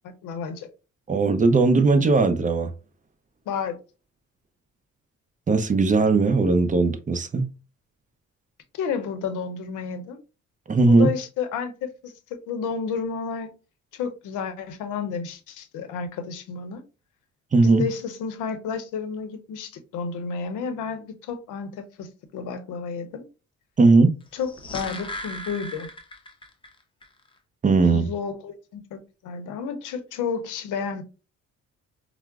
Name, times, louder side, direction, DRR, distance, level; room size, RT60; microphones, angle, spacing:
voice 1, 0.0-0.7 3.5-3.8 8.7-10.2 10.9-12.1 12.5-13.6 13.9-16.8 17.6-23.3 24.3-25.9 27.9-31.0, left 6 dB, 85° left, 0.6 m, -31 dB
voice 2, 1.1-2.7 5.5-7.5 10.7-11.1 17.5-17.8 23.8-24.1 27.6-28.1, right 3 dB, 25° right, 0.5 m, -18 dB
sound 1, 24.3-26.7 27.0-27.1, left 1 dB, 15° left, 0.6 m, -37 dB
4.5 x 2.0 x 2.3 m
cardioid pair, 90°, 30 cm